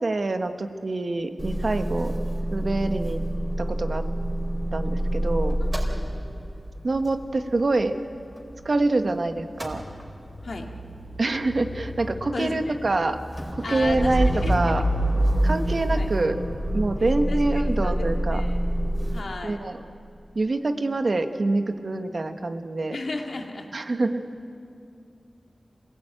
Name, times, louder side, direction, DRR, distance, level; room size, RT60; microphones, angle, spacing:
voice 1, 0.0-2.1 2.5-3.2 3.6-4.0 4.7-5.6 6.8-7.9 8.6-9.8 11.2-13.2 13.5-14.8 15.4-16.4 16.7-18.4 19.4-19.8 20.3-23.0 23.7-24.2, right 2 dB, 60° right, 7 dB, 1.3 m, -25 dB
Motor vehicle (road) / Engine starting / Idling, 1.4-9.1 9.4-19.2, right 1 dB, 20° right, 4.3 m, -27 dB
voice 2, 12.3-12.8 13.6-14.8 15.7-16.1 17.3-18.6 19.1-19.6 22.9-23.7, left 3 dB, 75° left, 2 dB, 2.3 m, -34 dB
26.5 x 17.5 x 8.9 m, 2.5 s
wide cardioid pair, 70°, 0 cm